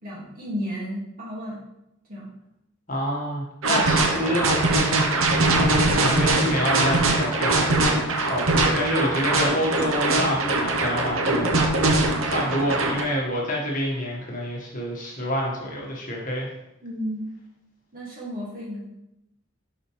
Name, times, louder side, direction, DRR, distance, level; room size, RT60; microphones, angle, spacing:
voice 1, 0.0-1.6 2.1-2.3 5.8-6.1 16.8-17.3 17.9-19.0, equal, 45° right, -6 dB, 2.1 m, -33 dB
voice 2, 2.9-4.5 5.6-16.5, equal, 40° left, -3 dB, 1.4 m, -28 dB
sound 1, 3.6-13.0, right 2 dB, 85° right, 0.9 m, -22 dB
6.3 x 5.0 x 3.2 m, 0.85 s
head